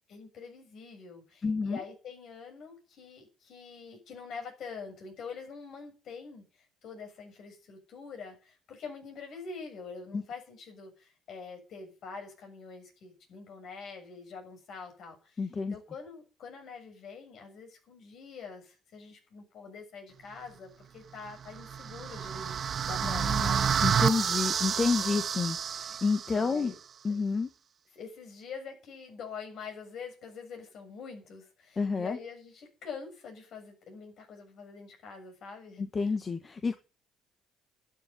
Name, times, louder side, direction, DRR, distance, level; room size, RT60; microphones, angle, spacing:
voice 1, 0.1-22.6 22.9-23.7 24.9-25.2 26.3-26.8 27.1-27.2 27.9-36.1, left 5 dB, 60° left, 3 dB, 6.9 m, -45 dB
voice 2, 1.4-1.8 10.1-10.2 15.4-15.8 23.0-26.7 27.0-27.5 31.8-32.2 35.8-36.8, left 4 dB, 35° left, 8 dB, 1.6 m, -30 dB
sound 1, 21.5-26.6, right 7 dB, 50° right, 0.7 m, -29 dB
12.0 x 7.5 x 9.7 m, 0.34 s
supercardioid pair, 65°, 0 cm